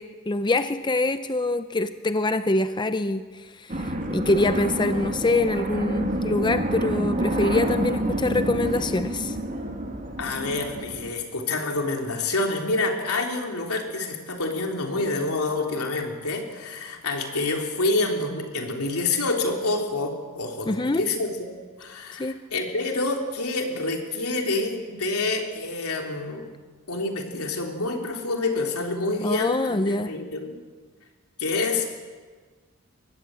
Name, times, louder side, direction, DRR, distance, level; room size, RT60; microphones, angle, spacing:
voice 1, 0.0-3.2 3.6-9.4 20.7-21.0 22.2-22.4 29.2-30.1, left 2 dB, 20° left, 10 dB, 0.6 m, -25 dB
sound 1, 3.7-11.1, right 1 dB, 40° right, 2.1 m, -28 dB
voice 2, 10.2-21.5 21.8-26.5 26.9-30.6 31.4-31.8, left 2 dB, 90° left, 2 dB, 3.5 m, -27 dB
23.5 x 18.0 x 7.7 m, 1.5 s
head